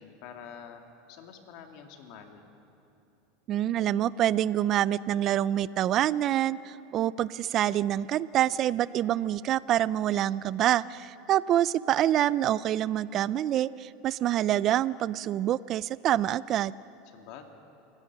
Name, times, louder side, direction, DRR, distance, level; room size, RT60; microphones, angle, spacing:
voice 1, 0.0-2.5 17.1-17.5, left 7 dB, 60° left, 4 dB, 2.4 m, -47 dB
voice 2, 3.5-16.7, right 12 dB, 40° right, 19 dB, 0.4 m, -26 dB
27.5 x 16.5 x 6.1 m, 2.9 s
supercardioid pair, 130°, 0 cm